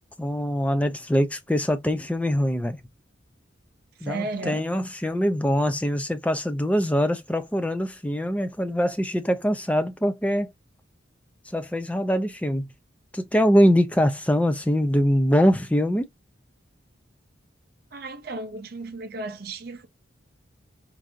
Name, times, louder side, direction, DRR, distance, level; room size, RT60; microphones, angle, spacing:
voice 1, 0.2-2.8 4.0-10.5 11.5-12.7 13.1-16.0, equal, 5° left, 0.4 m, -23 dB
voice 2, 4.0-4.6 17.9-19.9, right 2 dB, 50° right, 0.6 m, -34 dB
4.6 x 2.6 x 2.5 m
head